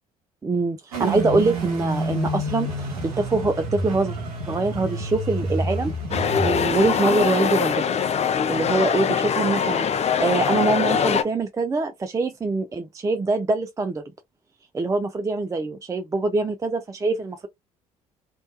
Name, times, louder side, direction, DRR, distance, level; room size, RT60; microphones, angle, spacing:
voice 1, 0.4-4.1 4.5-5.9 6.4-8.0 8.5-14.0 14.7-17.5, right 3 dB, 15° right, 0.4 m, -24 dB
sound 1, 0.9-7.0, right 1 dB, 85° right, 0.7 m, -28 dB
sound 2, 6.1-11.2, left 7 dB, 35° left, 0.5 m, -22 dB
2.5 x 2.2 x 2.2 m
hypercardioid pair, 55°, 19 cm